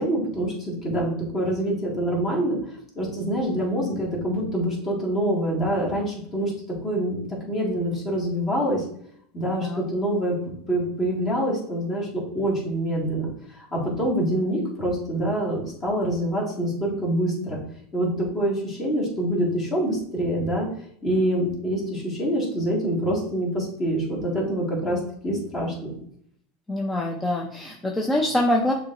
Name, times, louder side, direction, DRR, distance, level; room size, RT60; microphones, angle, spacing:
voice 1, 0.0-2.6 3.0-6.5 6.8-8.9 9.3-10.4 10.7-17.6 17.9-20.7 21.0-25.9, right 1 dB, 30° left, -3 dB, 1.9 m, -26 dB
voice 2, 26.7-28.7, left 1 dB, 10° left, 0 dB, 0.5 m, -24 dB
6.8 x 2.9 x 2.5 m, 0.67 s
supercardioid pair, 120°, 0 cm